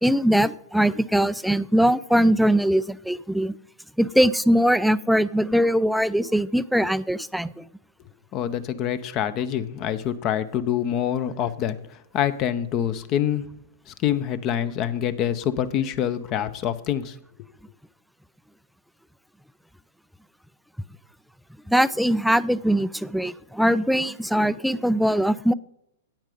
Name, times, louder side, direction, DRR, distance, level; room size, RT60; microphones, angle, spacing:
voice 1, 0.0-3.6 4.0-7.6 21.7-25.5, equal, ahead, 16 dB, 0.3 m, -21 dB
voice 2, 8.3-11.8 12.1-13.4 13.9-17.2, left 10 dB, 35° left, 14 dB, 0.7 m, -26 dB
9.1 x 8.8 x 5.1 m, 0.77 s
figure-of-eight pair, 105°, 0 cm